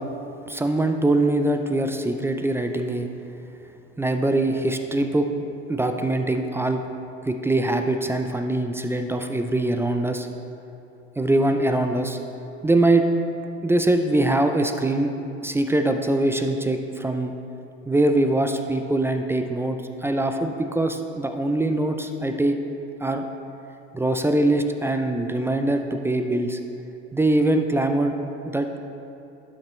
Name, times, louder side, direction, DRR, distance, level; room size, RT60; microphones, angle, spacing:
voice 1, 0.5-3.1 4.0-5.3 5.7-6.8 7.2-10.3 11.2-12.2 12.6-13.0 13.6-15.1 15.4-17.3 17.9-22.6 23.0-23.3 23.9-26.6 27.1-28.1 28.5-28.8, right 2 dB, 5° right, 6 dB, 0.3 m, -23 dB
12.0 x 5.8 x 3.1 m, 2.8 s
hypercardioid pair, 80°, 36 cm